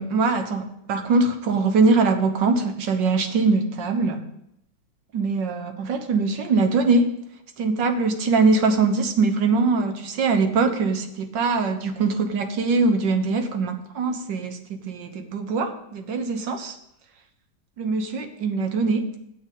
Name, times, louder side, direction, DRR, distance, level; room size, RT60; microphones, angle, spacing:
voice 1, 0.0-4.2 5.1-7.1 7.6-16.8 17.8-19.1, right 4 dB, 85° right, 7 dB, 1.8 m, -22 dB
8.1 x 6.5 x 8.3 m, 0.78 s
omnidirectional pair, 1.9 m